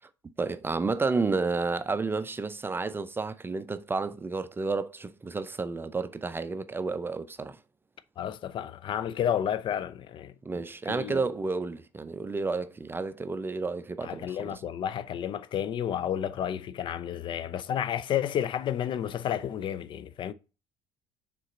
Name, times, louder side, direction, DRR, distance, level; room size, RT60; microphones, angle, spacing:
voice 1, 0.4-7.6 10.4-14.6, right 4 dB, 15° right, 0.5 m, -31 dB
voice 2, 8.2-10.3 10.9-11.3 14.0-20.3, left 9 dB, 35° left, 0.5 m, -31 dB
6.5 x 3.8 x 4.3 m
figure-of-eight pair, 60°, 14 cm